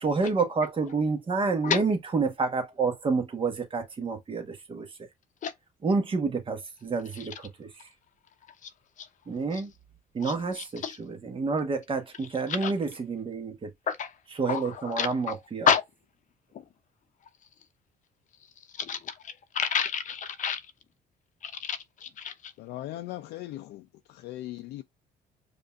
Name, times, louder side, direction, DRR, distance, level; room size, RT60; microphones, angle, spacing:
voice 1, 0.0-4.9 5.8-7.3 7.6-7.7 9.3-9.7 10.1-13.7 14.3-15.7, right 4 dB, 30° right, 1.2 m, -29 dB
voice 2, 10.2-11.0 12.5-12.7 13.9-14.1 14.5-15.4 15.7-15.8 18.8-20.6 21.4-22.5, left 7 dB, 50° left, 0.7 m, -30 dB
voice 3, 22.6-24.8, left 15 dB, 80° left, 0.5 m, -39 dB
5.1 x 2.6 x 2.4 m
cardioid pair, 110°, 17 cm